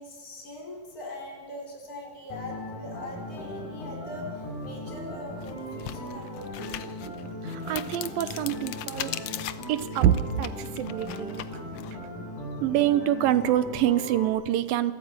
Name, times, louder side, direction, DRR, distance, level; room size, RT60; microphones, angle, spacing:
voice 1, 0.0-6.9, left 2 dB, 25° left, 0 dB, 5.4 m, -41 dB
sound 1, 2.3-14.3, left 1 dB, 55° left, 8.6 m, -38 dB
sound 2, 4.6-4.8 5.3-11.9, left 12 dB, 85° left, 1.4 m, -39 dB
voice 2, 7.4-9.2 9.7-11.5 12.6-14.9, right 11 dB, 80° right, 14 dB, 2.6 m, -26 dB
28.5 x 14.0 x 9.0 m, 1.4 s
omnidirectional pair, 4.1 m